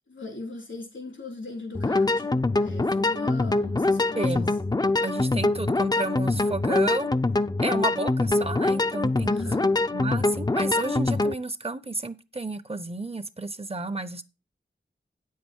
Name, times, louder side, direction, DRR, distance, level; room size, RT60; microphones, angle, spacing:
voice 1, 0.1-4.6 9.2-9.7, left 2 dB, 90° left, 3.7 m, -38 dB
sound 1, 1.7-11.3, left 2 dB, 20° left, 0.5 m, -24 dB
voice 2, 4.2-4.5 5.0-7.1 7.6-9.3 9.9-14.2, right 2 dB, 30° right, 0.7 m, -32 dB
9.0 x 7.6 x 4.5 m
wide cardioid pair, 55°, 20 cm